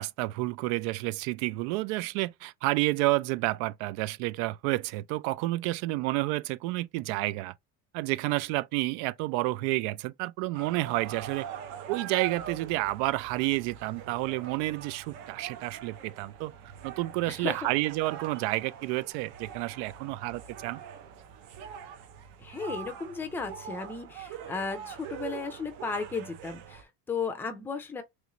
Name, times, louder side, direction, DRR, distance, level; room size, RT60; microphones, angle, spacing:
voice 1, 0.0-7.5 7.9-11.5 11.9-16.5 16.8-20.8, right 19 dB, 85° right, 0.5 m, -30 dB
sound 1, 10.5-26.8, right 8 dB, 60° right, 0.8 m, -43 dB
voice 2, 17.3-17.7 22.4-28.0, left 4 dB, 5° left, 0.5 m, -35 dB
3.2 x 3.0 x 3.8 m
cardioid pair, 175°, 31 cm